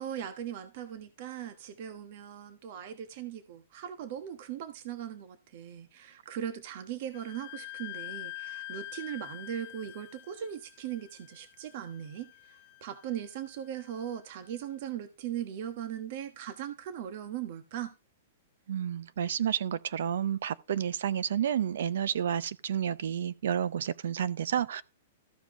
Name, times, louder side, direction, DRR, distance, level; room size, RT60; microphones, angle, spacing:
voice 1, 0.0-17.9, right 10 dB, 55° right, 1.2 m, -39 dB
Wind instrument woodwind instrument, 7.1-14.6, left 17 dB, 50° left, 0.7 m, -46 dB
voice 2, 18.7-24.8, right 9 dB, 75° right, 0.6 m, -30 dB
14.0 x 5.1 x 3.6 m
hypercardioid pair, 130°, 0 cm